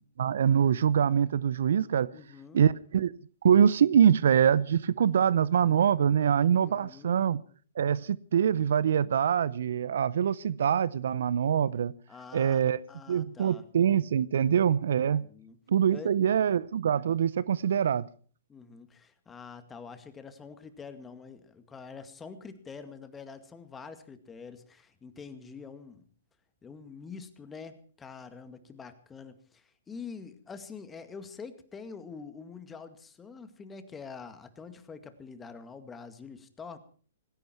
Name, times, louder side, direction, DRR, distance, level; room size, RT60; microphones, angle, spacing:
voice 1, 0.2-2.1 2.5-3.1 3.4-7.4 7.8-11.9 12.3-12.8 13.1-15.2 15.7-18.1, right 8 dB, 65° right, 0.7 m, -24 dB
voice 2, 2.1-2.6 6.6-7.2 12.1-12.6 12.9-13.6 15.0-15.6 15.9-16.2 18.5-26.1 26.6-36.8, left 5 dB, 15° left, 2.1 m, -46 dB
19.0 x 16.5 x 4.5 m
hypercardioid pair, 125°, 0 cm